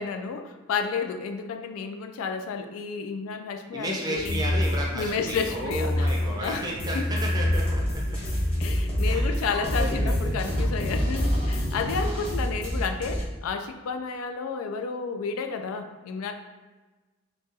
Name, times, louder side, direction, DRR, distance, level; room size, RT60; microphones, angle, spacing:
voice 1, 0.0-4.6 4.9-6.1 6.4-6.6 6.9-7.0 8.6-16.3, left 5 dB, 80° left, 6 dB, 0.3 m, -31 dB
voice 2, 3.7-8.2 9.0-10.5 12.3-12.4, right 1 dB, 20° right, -2 dB, 0.5 m, -33 dB
sound 1, 4.1-12.7, left 1 dB, 50° left, 0.7 m, -30 dB
sound 2, 7.4-13.2, equal, 25° left, 0.9 m, -27 dB
3.9 x 2.3 x 2.6 m, 1.2 s
head